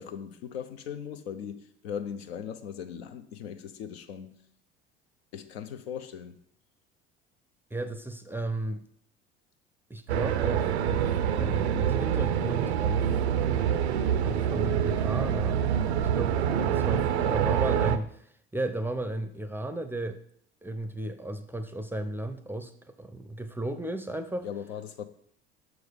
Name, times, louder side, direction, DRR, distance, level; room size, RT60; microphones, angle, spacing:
voice 1, 0.0-4.4 5.3-6.3 17.1-17.5 24.4-25.0, left 8 dB, 75° left, 0.7 m, -39 dB
voice 2, 7.7-8.8 9.9-13.2 14.2-15.6 16.0-20.2 20.6-24.5, right 1 dB, 5° right, 0.5 m, -35 dB
sound 1, 10.1-18.0, right 9 dB, 80° right, 0.5 m, -26 dB
6.1 x 4.7 x 5.1 m
figure-of-eight pair, 65°, 32 cm